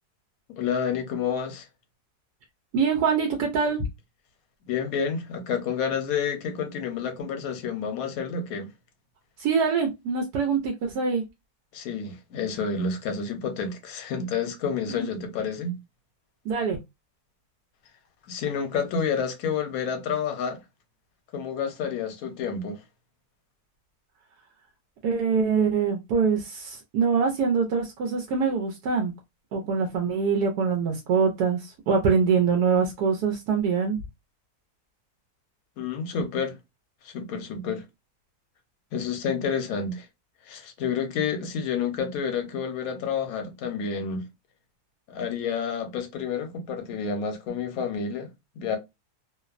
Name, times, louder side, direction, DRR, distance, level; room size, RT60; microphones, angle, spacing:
voice 1, 0.6-1.7 4.7-8.7 11.7-15.7 18.3-20.6 21.3-22.8 35.8-36.5 37.0-37.8 38.9-40.1 40.5-44.2 45.1-48.3 48.6-48.8, left 6 dB, 70° left, 1.1 m, -29 dB
voice 2, 2.7-3.8 9.4-11.2 14.9-15.1 16.4-16.8 25.0-29.1 29.5-34.0, right 5 dB, 85° right, 1.2 m, -24 dB
2.9 x 2.0 x 2.4 m
omnidirectional pair, 1.6 m